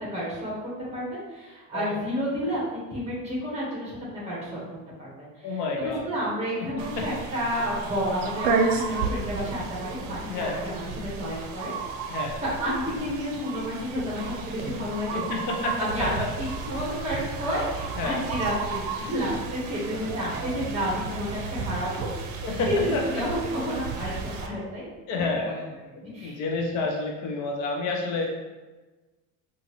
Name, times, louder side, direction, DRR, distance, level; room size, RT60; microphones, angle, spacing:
voice 1, 0.1-4.0 4.2-4.6 5.0-5.3 5.8-11.7 12.4-15.2 15.8-22.1 22.7-24.9 25.4-25.5 26.0-26.4, equal, 20° right, -6 dB, 1.2 m, -30 dB
voice 2, 5.4-6.1 6.6-7.1 7.5-7.6 10.3-10.6 12.1-12.4 15.1-16.3 18.0-18.2 22.4-23.2 24.0-24.1 25.1-25.7 26.0-28.3, left 3 dB, 60° left, 0 dB, 0.6 m, -30 dB
sound 1, 6.8-24.5, right 4 dB, 80° right, 0.5 m, -33 dB
3.9 x 2.5 x 2.9 m, 1.2 s
cardioid pair, 175°, 33 cm